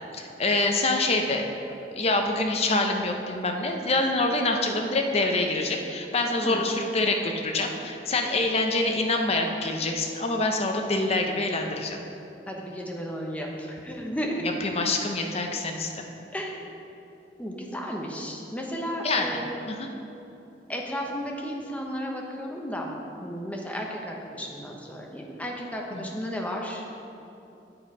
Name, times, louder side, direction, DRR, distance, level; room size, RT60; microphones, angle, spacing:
voice 1, 0.1-1.4 1.9-12.0 14.4-16.1 19.0-19.4 19.7-19.9 25.9-26.2, left 2 dB, 35° left, 3 dB, 0.8 m, -26 dB
voice 2, 12.5-14.4 16.3-16.7 17.4-19.5 20.7-22.9 23.2-26.9, equal, 10° left, -1 dB, 0.9 m, -34 dB
8.0 x 7.3 x 4.9 m, 2.8 s
head